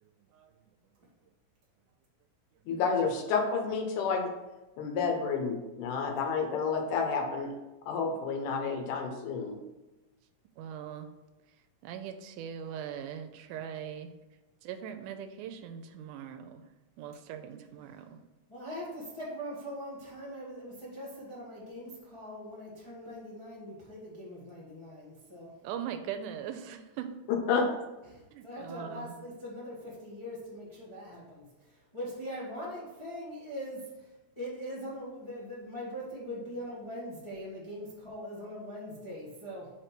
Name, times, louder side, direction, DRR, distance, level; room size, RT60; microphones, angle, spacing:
voice 1, 0.0-0.5 10.6-11.1 11.8-14.1 14.6-16.6 17.0-18.1 25.6-27.1 28.3-29.2, right 9 dB, 90° right, 7 dB, 2.1 m, -40 dB
voice 2, 2.7-4.3 4.8-7.5 7.8-9.6 27.5-27.7, left 5 dB, 85° left, 3 dB, 2.5 m, -30 dB
voice 3, 18.5-25.6 28.1-34.1 34.4-39.7, equal, 30° left, -6 dB, 0.5 m, -42 dB
4.9 x 4.4 x 5.9 m, 1.1 s
omnidirectional pair, 3.5 m